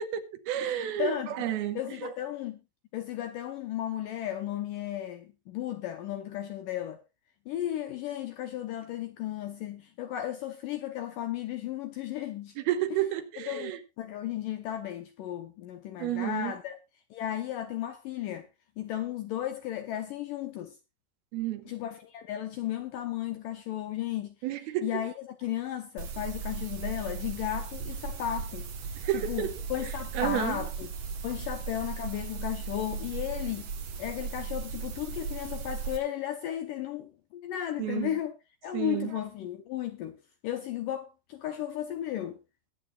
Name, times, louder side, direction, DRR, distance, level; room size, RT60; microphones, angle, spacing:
voice 1, 0.0-2.1 12.6-13.8 16.0-16.5 21.3-21.6 24.4-24.9 29.0-29.5 30.1-30.6 37.8-38.1 38.7-39.1, right 12 dB, 75° right, 2.9 m, -31 dB
voice 2, 0.6-1.4 1.8-2.6 2.9-7.0 7.5-12.6 12.9-13.0 13.4-16.8 17.1-18.5 18.8-20.8 21.7-24.4 24.8-28.7 29.1-30.9 31.2-33.7 34.0-38.4 38.6-42.4, left 12 dB, 75° left, 2.0 m, -35 dB
sound 1, 26.0-36.0, right 5 dB, 60° right, 3.5 m, -37 dB
21.5 x 9.1 x 2.4 m
omnidirectional pair, 4.8 m